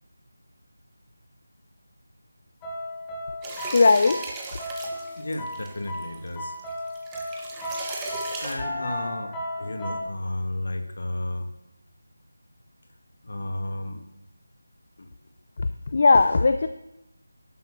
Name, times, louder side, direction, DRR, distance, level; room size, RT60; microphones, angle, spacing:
sound 1, 2.6-10.0, left 1 dB, 10° left, 1.2 m, -35 dB
sound 2, 3.4-8.5, right 3 dB, 10° right, 1.1 m, -37 dB
voice 1, 3.7-4.2 15.6-16.7, left 3 dB, 40° left, 10 dB, 0.6 m, -18 dB
voice 2, 5.2-6.5 8.4-11.5 13.2-14.0 15.0-15.1, left 1 dB, 55° left, 5 dB, 1.9 m, -32 dB
11.5 x 7.6 x 6.5 m, 0.90 s
figure-of-eight pair, 170°, 0 cm